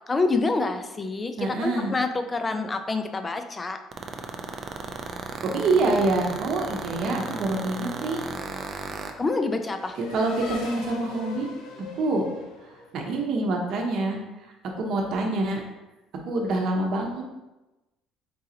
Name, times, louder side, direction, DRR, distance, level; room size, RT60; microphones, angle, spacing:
voice 1, 0.1-3.8 9.2-9.9, left 3 dB, 20° left, 7 dB, 0.4 m, -27 dB
voice 2, 1.4-1.9 5.4-8.2 10.0-11.5 12.0-12.2 12.9-14.2 14.8-15.6 16.2-17.2, right 2 dB, 60° right, 1 dB, 0.8 m, -26 dB
sound 1, 3.9-9.1, right 5 dB, 40° right, 0.4 m, -34 dB
Race car auto racing / Accelerating revving vroom, 7.9-13.5, left 3 dB, 85° left, 0.7 m, -43 dB
3.9 x 3.8 x 2.8 m, 1.0 s
cardioid pair, 110°, 0 cm